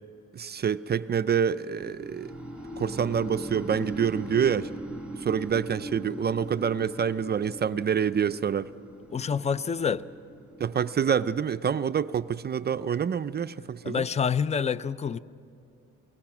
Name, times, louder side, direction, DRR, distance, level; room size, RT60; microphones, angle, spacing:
voice 1, 0.3-2.3 2.8-4.7 5.2-8.7 10.6-14.1, right 7 dB, 35° right, 0.4 m, -27 dB
sound 1, 1.8-11.7, right 1 dB, 5° right, 1.8 m, -40 dB
voice 2, 9.1-10.0 13.8-15.2, left 6 dB, 20° left, 0.5 m, -27 dB
28.0 x 19.0 x 6.0 m
cardioid pair, 90°, 30 cm